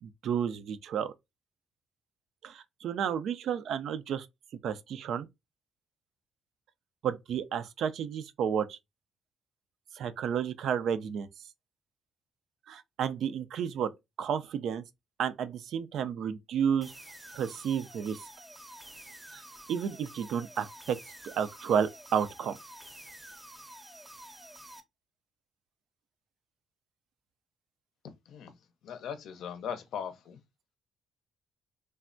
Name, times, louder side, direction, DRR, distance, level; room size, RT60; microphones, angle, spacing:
voice 1, 0.0-1.1 2.4-4.3 4.6-5.3 7.0-8.8 10.0-11.3 12.7-13.9 14.2-14.8 15.2-16.9 17.3-18.2 19.3-19.4 19.7-21.0 21.2-22.6, right 8 dB, 75° right, 0.4 m, -31 dB
sound 1, 16.8-24.8, right 1 dB, 10° right, 0.6 m, -49 dB
voice 2, 28.8-30.4, left 8 dB, 75° left, 0.5 m, -39 dB
3.3 x 2.1 x 2.4 m
cardioid pair, 90°, 0 cm